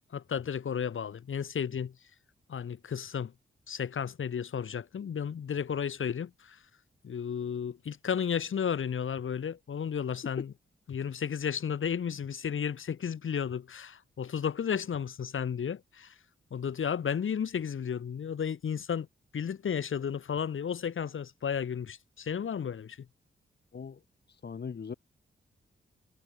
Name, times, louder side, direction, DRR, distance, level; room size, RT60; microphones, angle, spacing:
voice 1, 0.1-1.9 2.5-3.3 3.7-6.6 7.0-10.5 10.9-16.1 16.5-19.1 19.3-23.0, left 7 dB, 75° left, 2.9 m, -33 dB
voice 2, 24.3-24.9, left 6 dB, 50° left, 1.4 m, -40 dB
cardioid pair, 65°, 21 cm